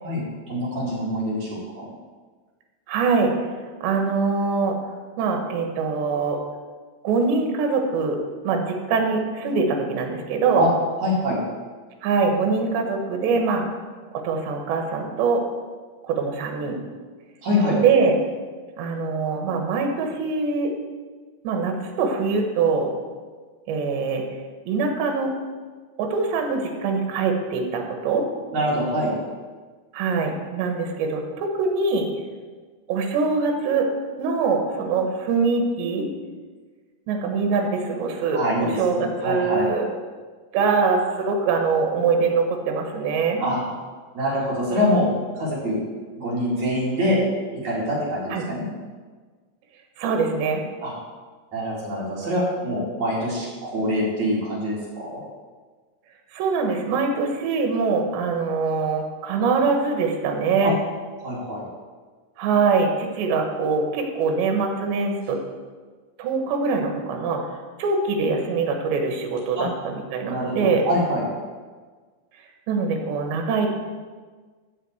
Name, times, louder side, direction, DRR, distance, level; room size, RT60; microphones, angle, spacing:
voice 1, 0.5-1.8 10.5-10.7 11.0-11.4 17.4-17.8 28.5-29.1 38.3-39.7 43.4-43.6 44.1-45.1 45.3-45.8 46.2-47.2 47.5-48.7 50.8-50.9 51.5-55.2 60.6-60.7 61.2-61.7 69.6-69.7 70.3-71.2, equal, 45° right, -6 dB, 3.3 m, -24 dB
voice 2, 2.9-3.3 3.8-4.8 5.2-6.4 7.0-8.2 8.4-10.6 12.0-13.6 14.2-15.4 16.0-16.8 17.8-18.1 18.8-20.7 21.4-22.9 23.7-24.2 24.7-25.3 26.0-28.3 29.9-32.1 32.9-33.9 34.2-36.1 37.1-39.9 40.5-43.4 48.3-48.4 50.0-50.6 56.3-60.7 62.4-65.4 66.2-67.4 67.8-70.8 72.7-73.7, right 4 dB, 75° right, 3 dB, 3.5 m, -23 dB
13.5 x 4.9 x 8.1 m, 1.5 s
omnidirectional pair, 5.2 m